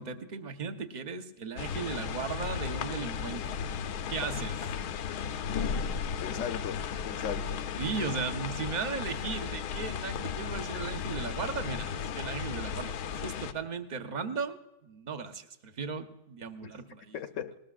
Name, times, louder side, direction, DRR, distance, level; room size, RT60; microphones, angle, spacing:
voice 1, 0.0-3.6 4.1-4.6 7.8-17.1, right 5 dB, 40° right, 7 dB, 0.7 m, -36 dB
sound 1, 1.6-13.5, left 7 dB, 75° left, 1.2 m, -35 dB
voice 2, 6.2-7.6 16.6-16.7 17.1-17.6, left 8 dB, 60° left, 9 dB, 1.0 m, -37 dB
19.5 x 19.0 x 2.4 m, 0.94 s
omnidirectional pair, 1.8 m